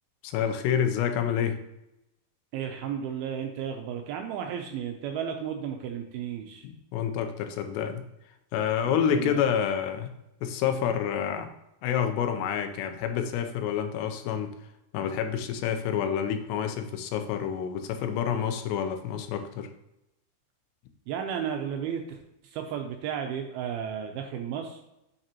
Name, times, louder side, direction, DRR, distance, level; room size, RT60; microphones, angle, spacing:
voice 1, 0.2-1.6 6.6-8.0 8.5-10.1 10.4-11.5 11.8-14.5 14.9-19.7, left 8 dB, 85° left, 7 dB, 2.9 m, -28 dB
voice 2, 2.5-6.7 8.8-9.4 21.1-22.2 22.4-24.8, right 8 dB, 85° right, 4 dB, 2.3 m, -33 dB
7.5 x 6.7 x 3.0 m, 0.88 s
omnidirectional pair, 4.9 m